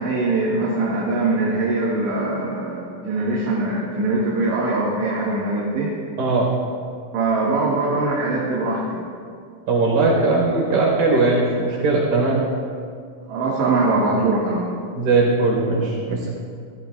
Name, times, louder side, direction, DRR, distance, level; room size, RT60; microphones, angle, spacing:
voice 1, 0.0-5.9 7.1-9.0 13.3-14.8, right 2 dB, 65° right, -6 dB, 3.9 m, -22 dB
voice 2, 6.2-6.5 9.7-12.4 14.9-16.3, right 3 dB, 45° right, -3 dB, 5.9 m, -19 dB
28.5 x 16.0 x 2.5 m, 2.2 s
omnidirectional pair, 5.9 m